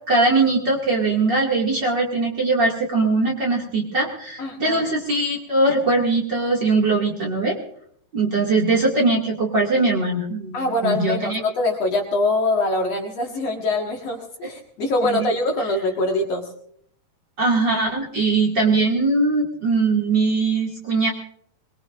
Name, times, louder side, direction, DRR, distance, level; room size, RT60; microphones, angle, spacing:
voice 1, 0.1-7.6 8.1-11.4 15.0-15.3 17.4-21.1, right 3 dB, 35° right, -2 dB, 2.4 m, -21 dB
voice 2, 4.4-4.8 10.5-16.4, left 2 dB, 55° left, 1 dB, 2.5 m, -23 dB
22.5 x 22.0 x 2.5 m, 0.64 s
omnidirectional pair, 3.9 m